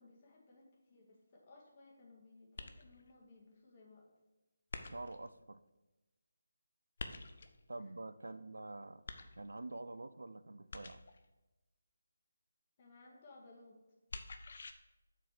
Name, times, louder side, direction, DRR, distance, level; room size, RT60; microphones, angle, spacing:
voice 1, 0.0-4.1 7.8-7.9 8.2-8.4 12.8-13.8, left 2 dB, 30° left, -2 dB, 2.0 m, -60 dB
sound 1, 2.6-3.1 4.7-5.3 7.0-7.6 9.1-9.7 10.7-11.3 14.1-14.7, left 3 dB, 50° left, 0.7 m, -47 dB
voice 2, 4.8-5.6 7.7-9.0 9.4-11.0, right 2 dB, 70° right, 14 dB, 0.4 m, -47 dB
7.4 x 4.3 x 6.7 m, 1.1 s
figure-of-eight pair, 155°, 0 cm